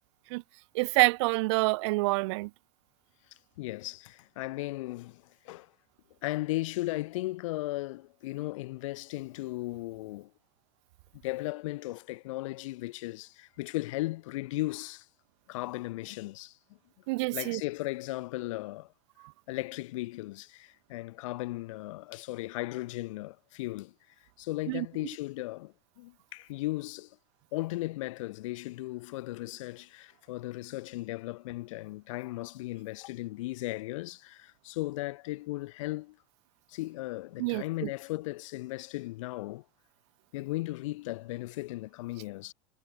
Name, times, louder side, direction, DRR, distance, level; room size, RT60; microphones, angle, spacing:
voice 1, 0.7-2.5 17.1-17.6 24.7-24.9 37.4-37.9, right 25 dB, 55° right, 1.0 m, -27 dB
voice 2, 3.6-5.7 6.2-10.3 11.2-15.1 15.5-16.6 17.3-18.9 19.5-23.9 24.4-27.2 27.5-36.2 36.7-39.6 40.3-42.5, left 19 dB, 70° left, 3.7 m, -36 dB
supercardioid pair, 170°, 17 cm